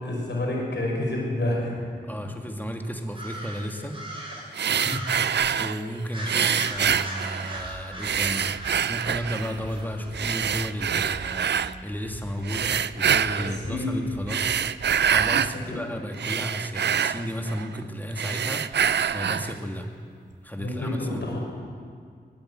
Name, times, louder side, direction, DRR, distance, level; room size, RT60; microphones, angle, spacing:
voice 1, 0.0-1.7 13.4-14.1 15.3-15.8 20.6-21.4, left 1 dB, 80° left, -2 dB, 4.9 m, -29 dB
voice 2, 2.0-3.9 4.7-11.5 11.8-14.6 15.1-19.9 20.4-21.2, equal, 10° left, 3 dB, 2.2 m, -33 dB
sound 1, 3.1-5.4 6.1-10.1, right 1 dB, 30° right, 5.6 m, -39 dB
sound 2, 4.5-5.8 6.3-7.7 8.0-9.6 10.1-11.7 12.4-13.6 14.2-15.6 15.9-17.8 18.1-19.6, right 8 dB, 75° right, 0.4 m, -25 dB
sound 3, 7.6-15.4, right 2 dB, 55° right, 2.3 m, -44 dB
20.5 x 8.9 x 7.6 m, 2.1 s
cardioid pair, 40°, 18 cm